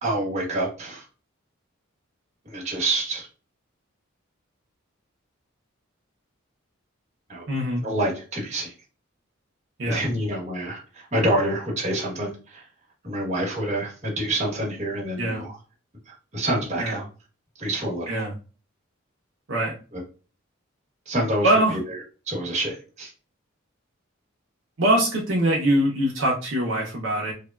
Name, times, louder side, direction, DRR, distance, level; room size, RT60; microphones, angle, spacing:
voice 1, 0.0-1.1 2.4-3.3 7.3-7.4 7.8-8.7 9.8-12.6 13.0-15.6 16.1-17.0 17.6-18.1 19.9-20.0 21.1-21.5 21.9-22.0 22.3-23.1, right 1 dB, 35° right, -2 dB, 1.1 m, -27 dB
voice 2, 7.5-7.8 9.8-10.0 15.2-15.4 16.8-17.0 18.1-18.3 19.5-19.7 21.4-21.8 24.8-27.3, right 1 dB, 65° right, -3 dB, 0.6 m, -23 dB
3.4 x 2.1 x 2.3 m, 0.35 s
head